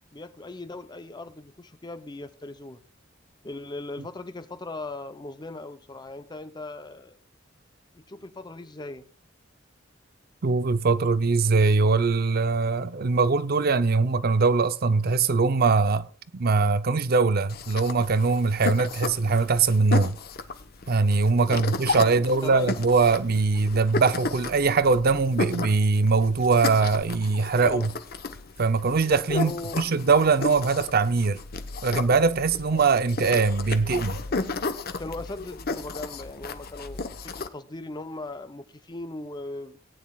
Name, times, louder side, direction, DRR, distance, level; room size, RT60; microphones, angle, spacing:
voice 1, 0.1-2.8 3.4-7.2 7.9-9.1 21.4-21.6 22.0-22.7 27.6-27.9 29.3-29.8 35.0-39.8, left 2 dB, 20° left, 0.6 m, -38 dB
voice 2, 10.4-16.1 16.3-20.2 20.9-27.9 28.6-31.4 31.8-34.2, right 4 dB, 50° right, 0.6 m, -22 dB
sound 1, 17.5-37.5, left 3 dB, 50° left, 1.0 m, -34 dB
18.5 x 9.6 x 2.3 m
head